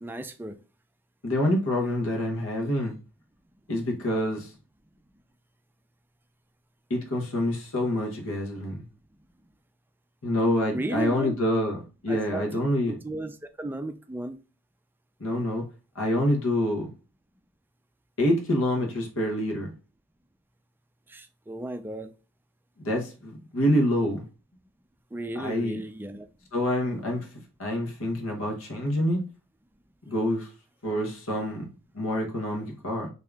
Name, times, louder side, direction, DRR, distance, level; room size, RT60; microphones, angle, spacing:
voice 1, 0.0-0.6 1.8-1.9 10.7-11.4 12.1-12.6 12.9-13.3 13.6-14.4 21.1-22.1 25.1-26.3, right 2 dB, 10° right, 0.4 m, -34 dB
voice 2, 1.2-2.9 3.7-4.5 6.9-8.8 10.2-13.0 15.2-15.6 15.9-16.9 18.2-19.7 22.8-24.2 25.4-25.8 26.5-27.3 27.6-29.2 30.1-30.5 30.8-31.7 31.9-33.1, left 1 dB, 80° left, 1.1 m, -26 dB
3.6 x 2.8 x 3.4 m
head